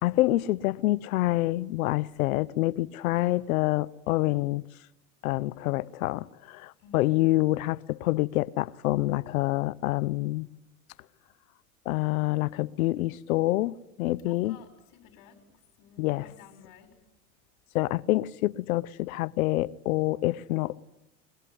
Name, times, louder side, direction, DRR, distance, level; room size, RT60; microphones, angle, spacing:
voice 1, 0.0-4.6 5.2-10.5 11.9-14.6 16.0-16.2 17.7-20.8, left 18 dB, 80° left, 0.9 m, -27 dB
voice 2, 3.0-3.4 6.8-7.3 14.3-15.5 15.8-17.0, left 7 dB, 55° left, 5.2 m, -53 dB
23.0 x 22.0 x 10.0 m
supercardioid pair, 125°, 42 cm